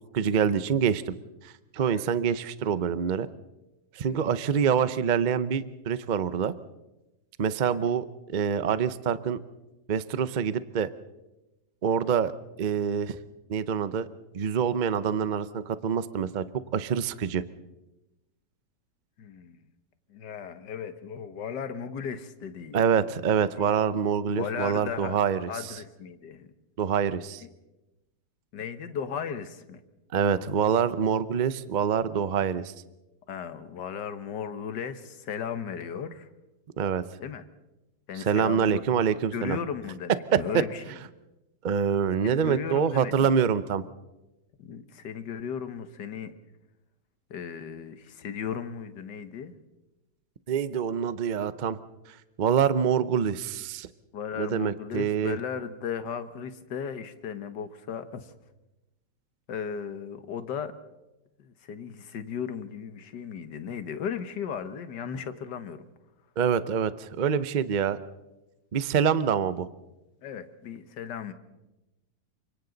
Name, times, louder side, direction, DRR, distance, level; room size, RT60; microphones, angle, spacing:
voice 1, 0.1-1.1 1.4-3.3 3.9-6.5 7.4-9.4 9.9-10.9 11.8-12.3 12.6-13.2 13.5-14.1 14.3-16.4 16.7-17.4 22.7-25.8 26.8-27.4 30.1-32.7 36.8-37.0 38.1-39.6 40.3-40.6 41.6-43.8 50.5-51.8 52.4-53.9 54.4-55.4 66.4-68.0 68.7-69.7, right 7 dB, 70° right, 14 dB, 0.4 m, -26 dB
voice 2, 1.8-2.3 4.1-4.2 7.7-7.8 19.2-19.6 20.1-22.8 23.6-23.8 24.4-26.5 28.5-29.8 33.3-36.3 37.2-37.4 38.1-38.8 39.3-40.8 42.2-43.3 44.6-46.3 47.3-49.5 54.1-58.3 59.5-60.7 61.4-65.8 70.2-71.3, left 7 dB, 70° left, 10 dB, 1.8 m, -36 dB
29.0 x 25.0 x 4.0 m, 1.0 s
omnidirectional pair, 2.0 m